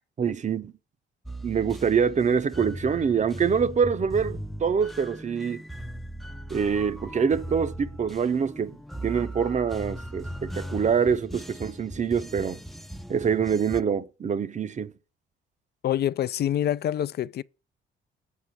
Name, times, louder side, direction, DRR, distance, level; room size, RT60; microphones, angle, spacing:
voice 1, 0.2-0.7 1.4-5.6 6.5-8.8 9.0-12.6 13.1-14.9, right 6 dB, 35° right, 0.7 m, -25 dB
sound 1, 1.3-13.8, equal, ahead, 0.5 m, -38 dB
voice 2, 15.8-17.4, left 11 dB, 55° left, 0.4 m, -26 dB
8.3 x 4.9 x 7.5 m
cardioid pair, 90°, 20 cm